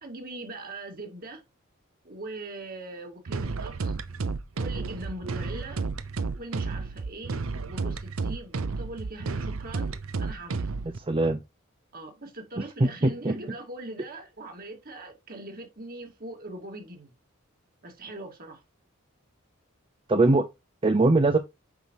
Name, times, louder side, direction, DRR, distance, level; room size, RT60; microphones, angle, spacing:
voice 1, 0.0-1.4 2.0-4.0 4.6-5.8 6.3-10.7 11.1-11.2 11.9-17.1 17.8-18.6, right 2 dB, 45° right, 2.1 m, -41 dB
sound 1, 3.3-11.0, right 4 dB, 75° right, 0.7 m, -32 dB
voice 2, 11.0-11.4 12.6-13.3 20.1-20.5 20.8-21.4, right 2 dB, 25° right, 0.5 m, -22 dB
8.3 x 5.9 x 3.0 m
head